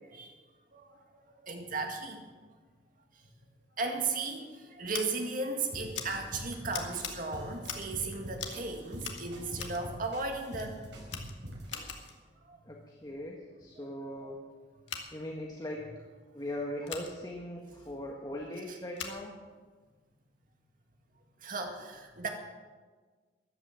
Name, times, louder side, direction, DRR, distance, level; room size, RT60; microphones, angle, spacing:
voice 1, 0.7-2.2 3.1-3.2 3.8-10.8 12.4-12.6 13.8-13.9 18.7-18.8 21.4-22.3, right 3 dB, 50° right, 3 dB, 2.1 m, -36 dB
Scissors, 4.9-5.0 5.9-6.1 6.7-7.1 7.6-8.0 8.4-8.6 9.0-9.8 10.5-10.7 11.1-12.2 14.8-15.0 16.8-17.1 18.9-19.2, left 7 dB, 85° left, 1.9 m, -41 dB
sound 1, 5.7-12.1, equal, 75° right, 5.2 m, -45 dB
voice 2, 12.6-14.4 15.1-15.9 16.3-19.4, left 1 dB, 20° left, 0 dB, 1.4 m, -40 dB
13.5 x 11.5 x 7.4 m, 1.4 s
head